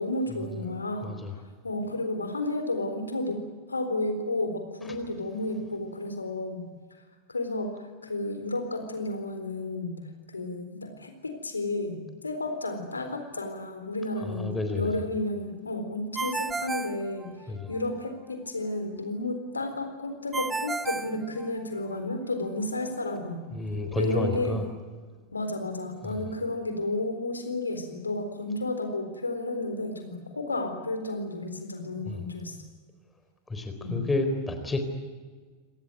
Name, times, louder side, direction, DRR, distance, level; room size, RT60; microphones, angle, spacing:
voice 1, 0.0-1.1 1.6-6.7 7.3-10.0 10.3-23.4 24.0-24.6 25.3-32.6 33.8-34.1, left 2 dB, 80° left, 7 dB, 4.0 m, -32 dB
voice 2, 1.0-1.4 4.8-4.9 14.2-15.0 17.5-17.7 23.5-24.6 26.0-26.3 32.1-32.2 33.5-34.8, left 2 dB, 10° left, 6 dB, 4.0 m, -30 dB
Ringtone, 16.1-17.8 20.3-22.0, right 4 dB, 10° right, 0.7 m, -33 dB
27.0 x 19.0 x 9.3 m, 1.5 s
figure-of-eight pair, 90°, 0 cm